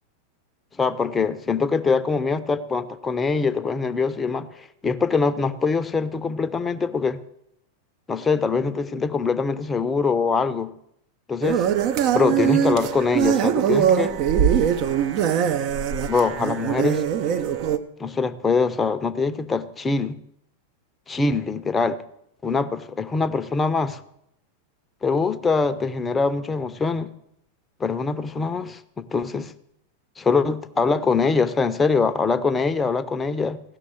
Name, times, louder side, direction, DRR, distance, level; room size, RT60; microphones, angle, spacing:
voice 1, 0.8-7.2 8.1-10.7 11.3-11.7 12.1-14.1 16.1-17.1 18.0-20.2 21.1-22.0 22.4-24.0 25.0-27.1 27.8-29.5 30.2-33.6, left 4 dB, 15° left, 11 dB, 0.8 m, -23 dB
sound 1, 11.4-17.8, right 9 dB, 40° right, 0.8 m, -22 dB
15.5 x 6.1 x 7.8 m, 0.75 s
figure-of-eight pair, 90°, 0 cm